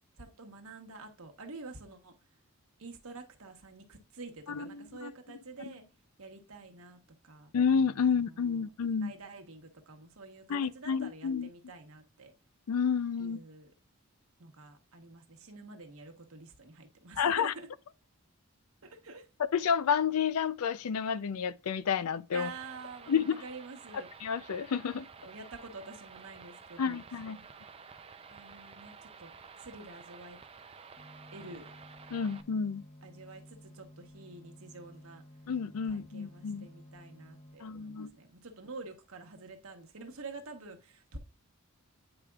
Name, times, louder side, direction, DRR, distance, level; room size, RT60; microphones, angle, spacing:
voice 1, 0.2-2.1 2.8-5.8 6.2-7.5 8.0-8.6 9.0-12.3 13.2-13.7 14.4-17.7 18.8-19.2 22.3-24.1 25.2-27.5 28.3-29.3 29.6-30.4 31.3-31.7 33.0-35.2 35.9-41.2, right 3 dB, 75° right, 1.1 m, -48 dB
voice 2, 4.5-5.1 7.5-9.1 10.5-11.5 12.7-13.4 17.2-17.5 19.4-22.5 23.1-23.4 23.9-25.1 26.8-27.4 32.1-32.8 35.5-36.7 37.6-38.1, left 6 dB, 90° left, 0.4 m, -30 dB
sound 1, 22.4-32.4, right 5 dB, 25° right, 0.4 m, -52 dB
sound 2, 31.0-37.5, equal, 30° left, 1.1 m, -54 dB
8.8 x 4.9 x 2.3 m
head